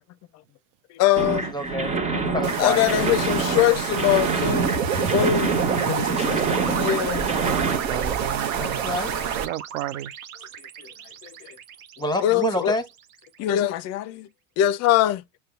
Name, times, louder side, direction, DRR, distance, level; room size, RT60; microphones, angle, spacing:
voice 1, 0.9-1.5 2.6-7.3 9.4-9.5 10.8-10.9 11.2-11.6 12.2-12.8 13.4-14.3 14.6-15.2, left 12 dB, 40° left, 0.5 m, -23 dB
sound 1, 1.2-7.8, right 4 dB, 15° right, 1.2 m, -27 dB
voice 2, 1.5-2.9 7.9-8.0 8.6-9.1 12.0-12.8, equal, 10° left, 0.9 m, -27 dB
sound 2, 2.4-9.5, right 7 dB, 45° right, 1.0 m, -29 dB
sound 3, 4.5-12.8, right 7 dB, 90° right, 0.8 m, -30 dB
voice 3, 7.3-8.9 9.4-10.1, right 15 dB, 65° right, 0.5 m, -33 dB
6.5 x 2.2 x 2.4 m
hypercardioid pair, 90°, 41 cm